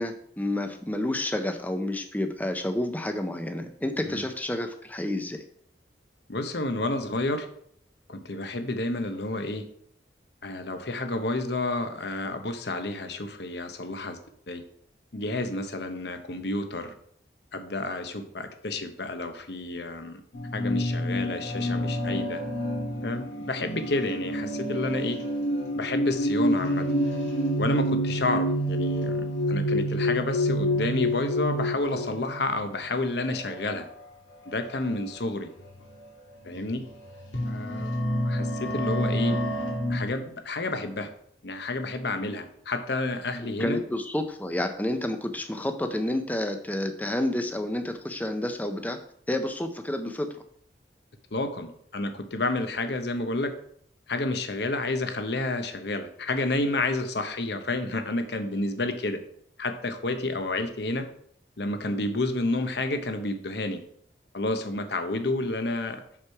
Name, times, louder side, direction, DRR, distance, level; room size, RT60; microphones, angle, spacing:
voice 1, 0.0-5.4 43.4-49.0 49.3-50.3, left 1 dB, 10° left, 7 dB, 0.6 m, -30 dB
voice 2, 6.3-7.5 8.1-9.7 10.4-14.2 14.5-14.6 15.1-16.9 17.5-20.2 20.5-22.4 23.0-25.2 25.7-26.8 27.6-33.9 34.5-35.5 36.4-36.8 37.4-37.9 38.2-39.4 39.9-41.1 41.4-43.8 51.3-53.5 54.1-59.2 59.6-61.0 61.6-63.8 64.3-66.0, left 2 dB, 65° left, 7 dB, 0.9 m, -30 dB
sound 1, 20.3-32.6 33.4-33.7 34.9-35.0 35.6-35.8 36.5-40.0, equal, 85° left, 2.3 m, -28 dB
6.2 x 5.9 x 4.7 m, 0.66 s
head